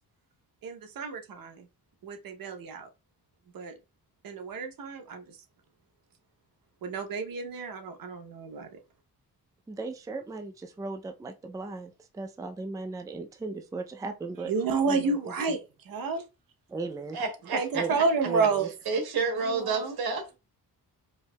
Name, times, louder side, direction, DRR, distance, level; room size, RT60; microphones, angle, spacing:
voice 1, 0.6-1.7 2.0-2.9 3.5-3.8 4.2-5.4 6.8-8.8 14.5-16.2 17.5-18.7 19.4-20.0, right 4 dB, 65° right, 0.8 m, -30 dB
voice 2, 9.7-14.5 14.8-15.6 16.7-17.2 17.7-18.0 18.3-18.7, right 4 dB, 10° right, 0.4 m, -37 dB
voice 3, 17.1-17.8 18.9-20.4, right 4 dB, 80° right, 1.1 m, -30 dB
4.5 x 2.7 x 2.2 m
cardioid pair, 100°, 37 cm